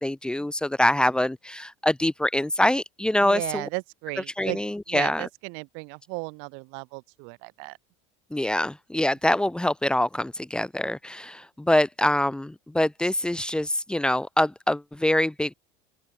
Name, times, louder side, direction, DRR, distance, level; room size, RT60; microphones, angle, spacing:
voice 1, 0.0-3.7 4.4-5.3 8.3-15.5, left 1 dB, 5° left, 1.8 m, -24 dB
voice 2, 3.2-4.6 4.9-7.8, right 35 dB, 65° right, 3.6 m, -35 dB
open air
cardioid pair, 150°, 21 cm